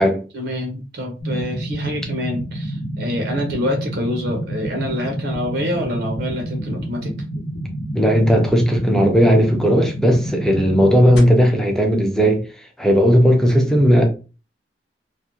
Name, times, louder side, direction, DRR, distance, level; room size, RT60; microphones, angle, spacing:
voice 1, 0.3-7.1, left 1 dB, 65° right, 0.6 m, -26 dB
sound 1, 1.2-11.2, right 1 dB, 80° left, 0.7 m, -29 dB
voice 2, 7.9-12.5 12.8-14.1, equal, 5° left, 0.5 m, -15 dB
2.4 x 2.1 x 2.9 m
head